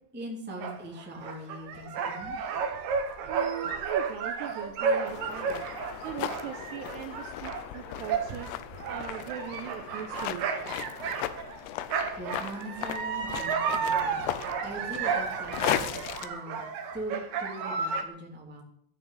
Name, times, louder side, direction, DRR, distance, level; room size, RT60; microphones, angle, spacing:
voice 1, 0.1-2.4 12.1-15.9 16.2-16.6 16.9-18.6, right 1 dB, 5° right, -1 dB, 1.4 m, -41 dB
sound 1, 0.6-11.6 11.9-18.0, right 5 dB, 65° right, 2.3 m, -32 dB
voice 2, 3.3-5.7 6.0-8.5 8.9-10.5, right 10 dB, 85° right, 6 dB, 2.4 m, -39 dB
sound 2, 5.1-16.3, left 12 dB, 80° left, 2.5 m, -37 dB
14.5 x 6.2 x 9.4 m, 0.68 s
omnidirectional pair, 5.7 m